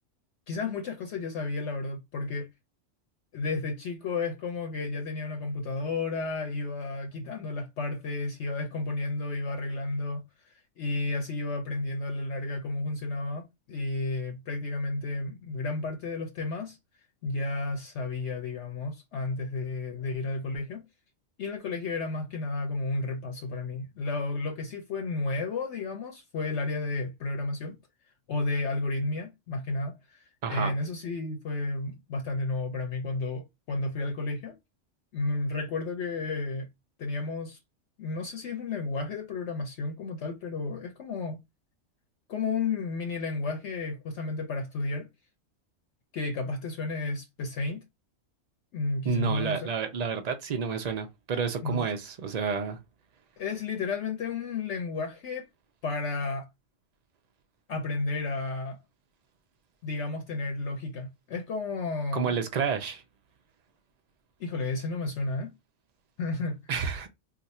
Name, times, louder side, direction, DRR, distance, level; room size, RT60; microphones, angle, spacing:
voice 1, 0.5-2.5 3.3-16.8 17.2-20.8 21.4-27.8 28.3-34.5 35.1-36.7 37.0-37.6 38.0-41.4 42.3-45.1 46.1-47.8 48.7-49.7 51.6-51.9 53.4-55.5 55.8-56.5 57.7-58.8 59.8-62.3 64.4-65.5 66.2-66.6, left 3 dB, 65° left, 0.9 m, -32 dB
voice 2, 30.4-30.7 49.0-52.8 62.1-63.0 66.7-67.1, right 6 dB, 80° right, 0.3 m, -30 dB
2.5 x 2.4 x 4.1 m
omnidirectional pair, 1.3 m